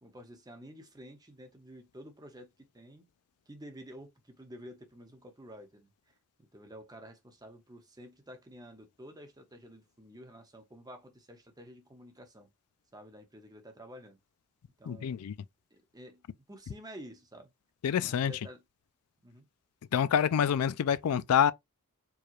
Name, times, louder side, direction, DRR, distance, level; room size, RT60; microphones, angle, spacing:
voice 1, 0.0-3.1 3.5-12.5 12.9-14.2 14.8-15.2 15.7-17.5 18.0-18.6 19.2-19.5, equal, 20° right, 1.0 m, -50 dB
voice 2, 14.9-15.3 17.8-18.3 19.9-21.5, left 8 dB, 80° left, 0.4 m, -26 dB
4.7 x 2.3 x 3.0 m
head